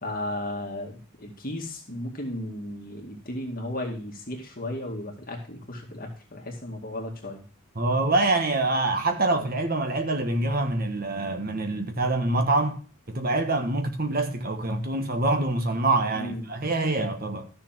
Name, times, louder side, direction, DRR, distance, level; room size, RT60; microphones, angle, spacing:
voice 1, 0.0-7.4 16.1-16.5, left 1 dB, 40° left, 2.2 m, -35 dB
voice 2, 7.7-12.8 13.1-17.5, right 2 dB, 40° right, 1.4 m, -25 dB
13.0 x 6.7 x 4.4 m
head